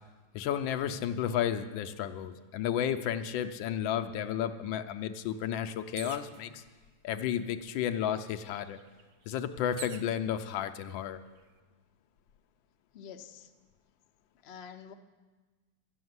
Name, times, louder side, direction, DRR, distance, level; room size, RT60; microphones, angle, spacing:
voice 1, 0.3-6.6 7.0-8.8 9.3-11.2, left 9 dB, 85° left, 9 dB, 1.4 m, -32 dB
sound 1, 6.0-6.4 7.3-7.4 7.7-10.1 10.9-11.4, right 8 dB, 70° right, 0.8 m, -47 dB
voice 2, 12.9-13.5 14.4-14.9, left 7 dB, 60° left, 6 dB, 0.6 m, -47 dB
11.5 x 7.1 x 9.4 m, 1.3 s
omnidirectional pair, 2.1 m